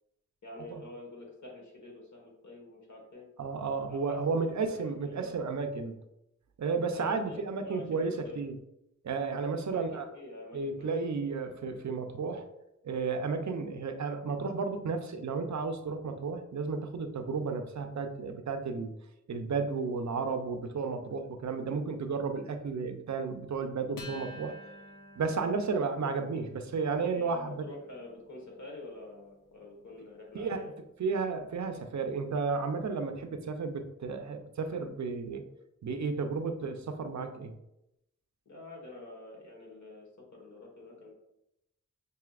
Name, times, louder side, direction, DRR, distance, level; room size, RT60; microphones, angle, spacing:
voice 1, 0.4-3.2 3.9-4.2 4.4-5.3 6.9-8.4 9.7-11.2 27.1-30.7 38.4-41.1, left 2 dB, 60° left, -1 dB, 1.4 m, -47 dB
voice 2, 3.4-6.0 6.6-8.6 9.0-10.1 10.5-12.5 12.8-18.9 19.3-24.5 25.2-27.6 30.3-30.7 31.0-35.4 35.8-37.6, right 4 dB, 60° right, 6 dB, 0.6 m, -33 dB
Acoustic guitar, 24.0-30.8, left 1 dB, 75° left, 0.8 m, -51 dB
5.8 x 2.7 x 2.4 m, 0.85 s
cardioid pair, 50°, 32 cm